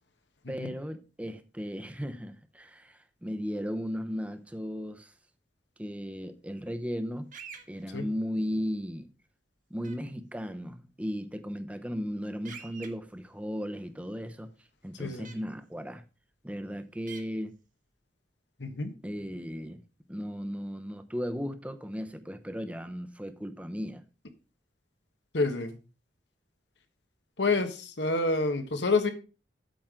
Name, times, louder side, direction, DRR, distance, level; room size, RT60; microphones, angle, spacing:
voice 1, 0.5-5.1 5.8-7.3 7.7-9.1 9.7-14.5 14.8-16.0 16.4-17.6 19.0-19.8 20.1-24.1, equal, 5° right, 0.8 m, -36 dB
sound 1, 7.3-7.6 9.8-9.9 12.4-12.9 15.2-15.3 17.1-17.2, right 6 dB, 45° right, 1.3 m, -44 dB
voice 2, 15.0-15.3 18.6-18.9 25.3-25.7 27.4-29.1, left 3 dB, 75° left, 1.3 m, -28 dB
8.8 x 7.4 x 3.8 m
head